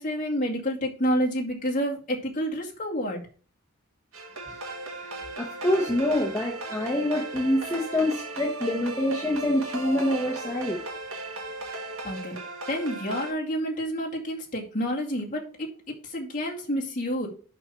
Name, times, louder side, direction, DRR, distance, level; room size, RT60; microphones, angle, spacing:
voice 1, 0.0-3.2 12.0-12.4 12.7-15.7 16.0-17.3, equal, 35° left, -2 dB, 2.3 m, -29 dB
sound 1, 4.1-13.3, right 2 dB, 70° right, 1.5 m, -36 dB
voice 2, 5.4-10.8, left 1 dB, 15° left, -2 dB, 1.1 m, -26 dB
6.0 x 5.7 x 6.9 m, 0.40 s
head